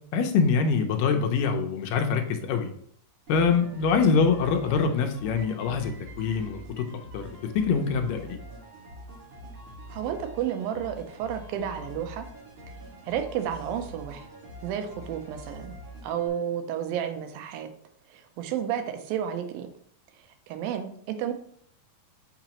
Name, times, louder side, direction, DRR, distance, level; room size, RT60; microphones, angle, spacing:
voice 1, 0.1-2.7 3.3-6.9 7.1-8.4, left 5 dB, 80° left, 5 dB, 2.3 m, -24 dB
sound 1, 3.3-16.3, equal, 50° right, 2.8 m, -44 dB
voice 2, 9.9-12.3 13.1-14.3 14.6-15.7 16.0-17.7 18.1-19.7 20.5-21.3, right 9 dB, 85° right, 7 dB, 2.5 m, -31 dB
6.8 x 5.8 x 2.9 m, 0.63 s
omnidirectional pair, 4.1 m